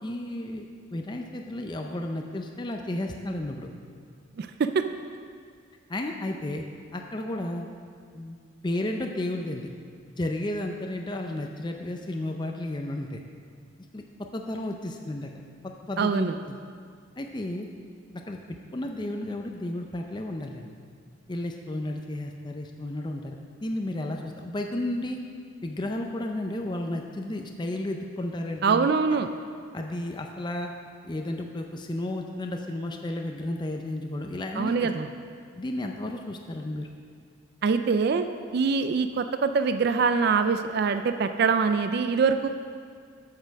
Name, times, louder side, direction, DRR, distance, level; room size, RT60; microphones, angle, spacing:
voice 1, 0.0-0.7 0.9-3.7 5.9-6.6 6.9-7.7 8.1-8.4 8.6-9.7 10.2-13.2 13.9-14.0 14.3-15.3 15.6-16.6 17.2-17.7 18.2-20.7 21.3-23.4 23.6-25.2 25.6-28.9 29.7-30.7 31.0-34.9 35.6-36.9, left 1 dB, 20° left, 3 dB, 0.5 m, -32 dB
voice 2, 16.0-16.4 28.6-29.3 34.6-35.1 37.6-38.3 38.5-42.5, right 5 dB, 50° right, 9 dB, 0.3 m, -24 dB
8.1 x 6.6 x 6.2 m, 2.1 s
head